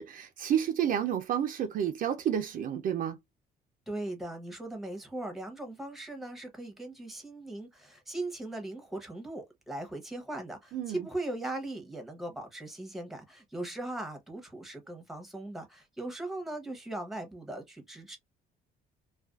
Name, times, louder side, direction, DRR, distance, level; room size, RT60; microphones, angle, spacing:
voice 1, 0.0-3.2 10.7-11.1, right 9 dB, 55° right, 0.5 m, -30 dB
voice 2, 3.9-18.2, right 2 dB, ahead, 0.8 m, -39 dB
2.4 x 2.3 x 2.3 m
cardioid pair, 110°, 17 cm